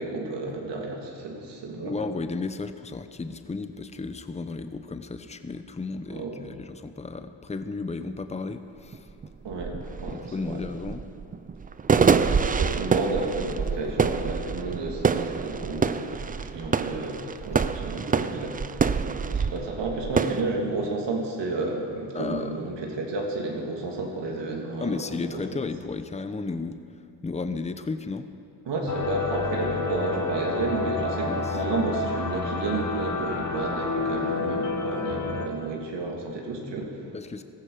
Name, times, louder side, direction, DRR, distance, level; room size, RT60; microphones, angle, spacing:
voice 1, 0.0-1.9 6.1-6.3 9.4-10.6 12.0-18.6 19.3-24.9 25.2-25.4 28.7-37.0, right 3 dB, 60° right, 0 dB, 3.0 m, -31 dB
voice 2, 1.8-9.1 10.1-11.0 22.1-22.6 24.8-26.8 27.2-28.3 31.0-31.6 37.1-37.4, left 3 dB, 15° left, 10 dB, 0.8 m, -33 dB
sound 1, 8.5-8.6 8.9-20.4, right 5 dB, 20° right, 0.5 m, -26 dB
sound 2, 28.9-35.5, left 4 dB, 40° left, 1.9 m, -29 dB
16.5 x 14.0 x 5.0 m, 2.7 s
supercardioid pair, 70°, 47 cm